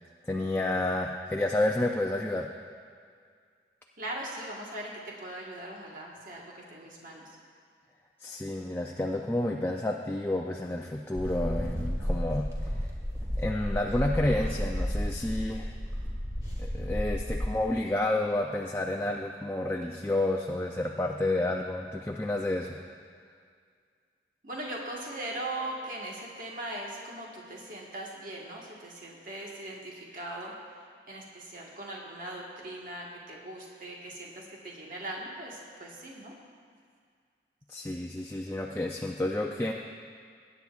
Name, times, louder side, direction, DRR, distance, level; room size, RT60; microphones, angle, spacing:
voice 1, 0.3-2.5 8.2-12.5 13.4-15.7 16.6-22.8 37.7-39.7, left 1 dB, 15° left, 0 dB, 0.4 m, -30 dB
voice 2, 4.0-7.3 24.4-30.5 31.1-36.3, right 1 dB, 50° right, -3 dB, 1.5 m, -40 dB
sound 1, 11.1-17.6, equal, 20° right, 1.9 m, -32 dB
20.0 x 9.5 x 2.5 m, 2.1 s
head